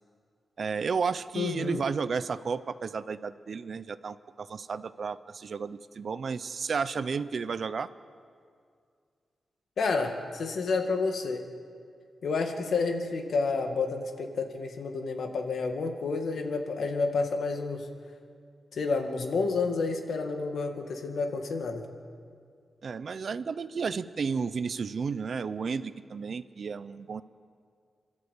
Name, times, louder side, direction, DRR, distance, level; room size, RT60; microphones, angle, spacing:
voice 1, 0.6-7.9 22.8-27.2, right 5 dB, 50° right, 14 dB, 0.6 m, -32 dB
voice 2, 1.4-1.8 9.8-11.4 12.2-17.9 18.7-21.8, left 4 dB, 70° left, 4 dB, 2.0 m, -30 dB
28.0 x 12.0 x 8.4 m, 2.2 s
wide cardioid pair, 155°, 0 cm